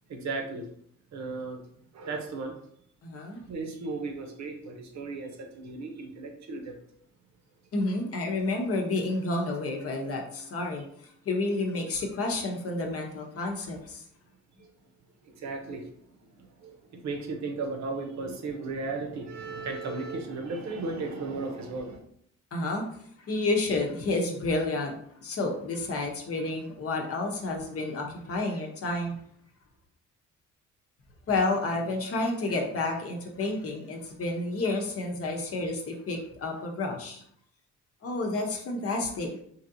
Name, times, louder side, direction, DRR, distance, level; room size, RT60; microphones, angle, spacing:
voice 1, 0.1-0.7 1.1-1.6 1.9-2.6 3.5-6.8 15.3-15.9 16.4-22.0, right 3 dB, 65° right, 4 dB, 0.7 m, -35 dB
voice 2, 3.0-3.4 7.7-10.8 11.3-14.0 22.5-22.8 23.3-24.9 25.2-29.2 31.3-37.2 38.0-39.4, left 2 dB, 50° left, 2 dB, 0.8 m, -30 dB
3.1 x 2.7 x 2.6 m, 0.66 s
cardioid pair, 90°, 30 cm